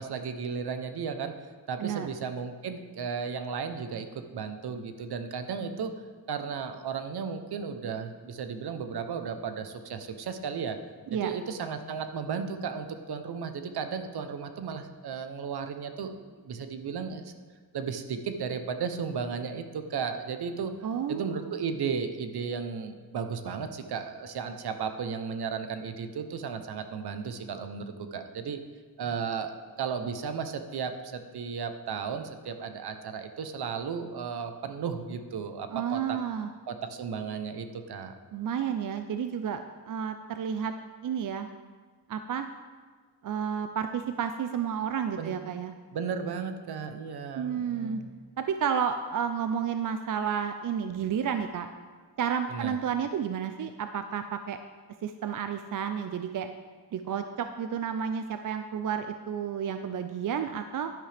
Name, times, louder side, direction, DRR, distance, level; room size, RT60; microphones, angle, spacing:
voice 1, 0.0-1.4 1.7-4.1 4.3-5.9 6.3-10.8 11.1-16.1 16.4-17.3 17.7-20.7 21.1-28.6 29.0-29.5 29.8-36.2 36.7-38.1 45.2-45.4 45.9-48.1 52.5-52.8, right 6 dB, 70° right, 8 dB, 0.8 m, -34 dB
voice 2, 20.8-21.5 35.7-36.5 38.3-40.7 41.0-41.5 42.1-42.5 43.2-45.7 47.4-48.0 48.4-51.7 52.2-54.6 55.0-56.5 56.9-60.9, right 7 dB, 50° right, 8 dB, 0.4 m, -31 dB
10.5 x 10.5 x 3.4 m, 1.5 s
wide cardioid pair, 170°, 40 cm